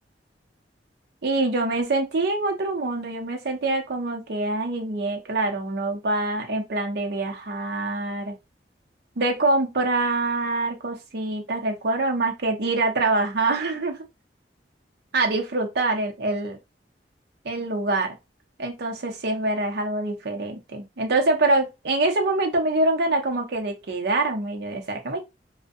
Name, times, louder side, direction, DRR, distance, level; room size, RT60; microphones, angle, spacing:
voice 1, 1.2-8.4 9.2-14.0 15.1-16.6 17.4-18.2 18.6-25.2, right 2 dB, 65° right, 0.6 m, -25 dB
2.6 x 2.1 x 2.4 m
head